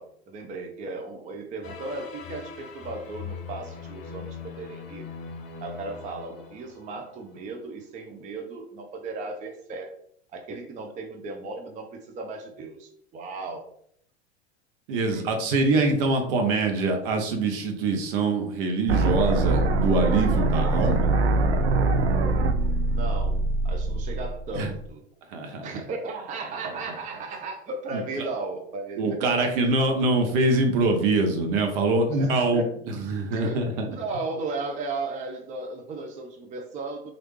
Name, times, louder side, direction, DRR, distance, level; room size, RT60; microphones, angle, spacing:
voice 1, 0.0-5.0 5.6-9.9 10.3-13.6 15.1-15.2 22.4-25.0 25.6-29.5 32.2-32.7 33.3-37.1, right 3 dB, 25° right, 3 dB, 0.5 m, -36 dB
sound 1, 1.6-7.4, left 6 dB, 55° left, 0.7 m, -41 dB
voice 2, 14.9-21.1 24.5-24.7 25.3-25.7 26.6-26.7 27.9-28.3 29.0-33.9, right 2 dB, 60° right, 4 dB, 0.8 m, -24 dB
sound 2, 18.9-24.9, right 3 dB, 85° right, 0.5 m, -23 dB
3.1 x 2.5 x 3.1 m, 0.66 s
hypercardioid pair, 90°, 33 cm